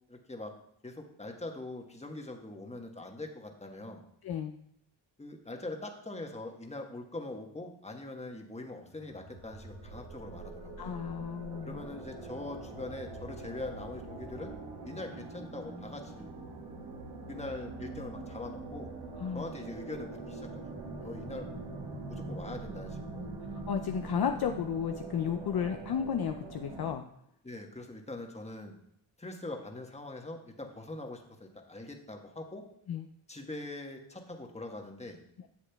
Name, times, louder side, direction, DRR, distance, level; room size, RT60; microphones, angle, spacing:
voice 1, 0.1-0.5 0.8-4.0 5.2-11.0 11.6-14.5 14.8-16.3 17.3-18.9 19.3-20.7 21.0-21.5 22.1-23.3 27.4-28.8 29.2-32.6 33.3-35.2, left 2 dB, 15° left, 2 dB, 1.3 m, -42 dB
voice 2, 4.2-4.5 10.8-11.8 19.2-19.5 23.7-27.0 32.9-33.1, left 8 dB, 50° left, 5 dB, 0.6 m, -33 dB
sound 1, 8.9-26.9, right 3 dB, 85° right, 1.6 m, -43 dB
10.0 x 7.2 x 2.3 m, 0.72 s
cardioid pair, 70°, 50 cm